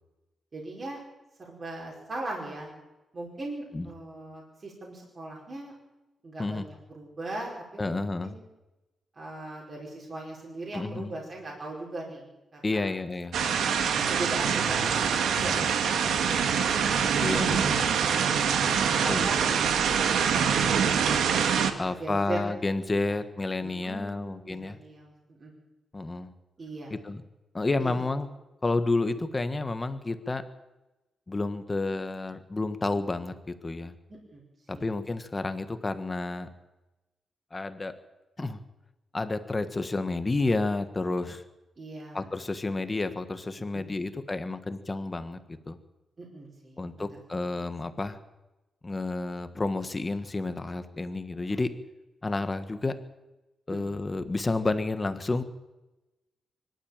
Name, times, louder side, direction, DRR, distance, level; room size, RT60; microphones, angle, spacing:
voice 1, 0.5-1.0 1.5-2.7 3.1-5.7 6.2-8.4 9.2-12.3 12.5-12.9 13.7-17.4 18.6-20.7 21.6-22.4 23.0-23.2 23.6-25.1 25.4-25.5 26.6-26.9 27.8-28.0 34.1-34.4 34.7-34.9 41.8-42.3 43.7-44.0 46.2-47.2 53.7-54.0, right 2 dB, 30° right, -3 dB, 4.8 m, -40 dB
voice 2, 7.8-8.3 10.7-11.1 12.6-13.4 15.4-15.7 17.2-17.8 19.1-19.3 21.8-24.8 25.9-26.3 26.9-27.2 27.5-28.3 28.6-30.4 31.3-33.9 34.7-36.5 37.5-37.9 38.4-38.6 39.1-41.4 42.1-45.4 45.7-45.8 46.8-48.2 48.8-51.7 52.2-53.0 53.7-55.4, left 3 dB, 20° left, 10 dB, 1.4 m, -30 dB
sound 1, 13.3-21.7, right 7 dB, 90° right, 1.8 m, -25 dB
24.0 x 12.5 x 8.9 m, 1.0 s
wide cardioid pair, 170°, 0 cm